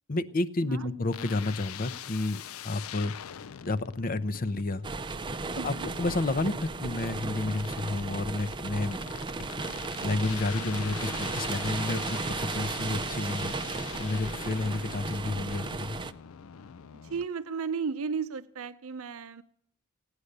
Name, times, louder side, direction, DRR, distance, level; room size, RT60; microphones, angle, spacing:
voice 1, 0.1-3.1 3.6-4.8 5.6-9.0 10.0-13.5 14.0-16.0, left 2 dB, 45° left, 13 dB, 0.7 m, -30 dB
sound 1, 1.1-17.3, left 9 dB, 85° left, 0.5 m, -43 dB
sound 2, 4.8-16.1, right 3 dB, 25° right, 0.6 m, -35 dB
voice 2, 5.6-5.9 17.0-19.4, right 5 dB, 85° right, 11 dB, 0.6 m, -34 dB
16.5 x 9.8 x 6.6 m, 0.65 s
head